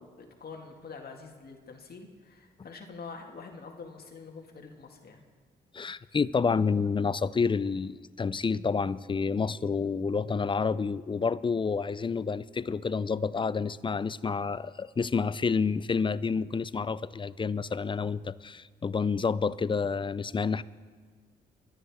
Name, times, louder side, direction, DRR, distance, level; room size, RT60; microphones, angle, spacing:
voice 1, 0.0-5.2, left 4 dB, 55° left, 3 dB, 2.0 m, -46 dB
voice 2, 5.7-20.6, left 5 dB, 25° left, 18 dB, 0.4 m, -29 dB
24.0 x 10.0 x 3.6 m, 1.5 s
supercardioid pair, 60°, 19 cm